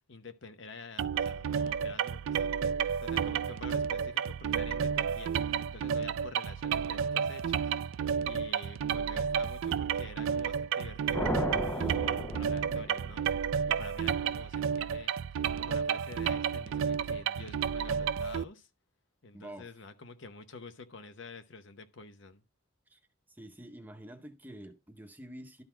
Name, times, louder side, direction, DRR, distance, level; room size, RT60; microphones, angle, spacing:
voice 1, 0.1-2.5 2.8-13.3 13.7-15.1 15.4-18.7 19.2-22.4, left 3 dB, 60° left, 0.8 m, -48 dB
sound 1, 1.0-18.4, right 7 dB, 75° right, 0.4 m, -31 dB
sound 2, 11.1-13.4, left 1 dB, 10° left, 0.4 m, -35 dB
voice 2, 19.3-19.7 22.9-23.0 23.3-25.6, right 1 dB, 10° right, 0.8 m, -47 dB
12.0 x 4.1 x 4.4 m
head